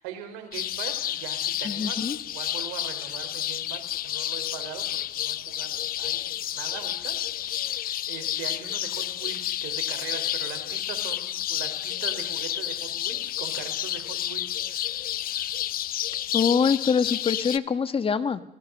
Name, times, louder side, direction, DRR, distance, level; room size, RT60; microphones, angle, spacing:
voice 1, 0.0-15.6, right 9 dB, 85° right, 7 dB, 4.7 m, -41 dB
sound 1, 0.5-17.6, left 12 dB, 50° left, 0.8 m, -30 dB
voice 2, 1.6-2.2 16.3-18.4, left 6 dB, 30° left, 12 dB, 1.6 m, -24 dB
27.0 x 20.0 x 6.7 m, 0.79 s
supercardioid pair, 90°, 19 cm